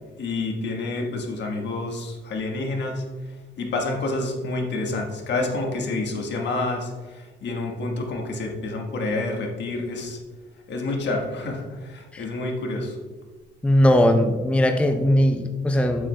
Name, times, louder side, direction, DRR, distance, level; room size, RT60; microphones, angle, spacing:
voice 1, 0.2-3.0 3.6-10.2 10.7-13.0, left 2 dB, 60° left, 1 dB, 1.4 m, -28 dB
voice 2, 13.6-16.1, left 1 dB, 5° left, 5 dB, 0.5 m, -19 dB
8.1 x 7.5 x 2.2 m, 1.4 s
cardioid pair, 90°, 20 cm